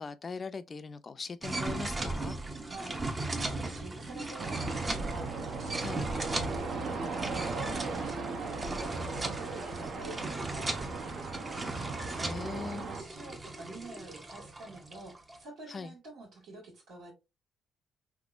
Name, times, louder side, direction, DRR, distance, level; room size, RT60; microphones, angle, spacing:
voice 1, 0.0-2.4 5.8-6.0 12.1-12.9 15.7-15.9, left 4 dB, 35° left, 0.4 m, -40 dB
sound 1, 1.4-15.4, right 2 dB, 25° right, 0.7 m, -37 dB
voice 2, 2.6-7.0 7.3-17.1, right 2 dB, 80° right, 1.8 m, -48 dB
sound 2, 4.4-13.0, right 4 dB, 60° right, 0.7 m, -38 dB
3.4 x 3.0 x 2.4 m
cardioid pair, 90°, 0 cm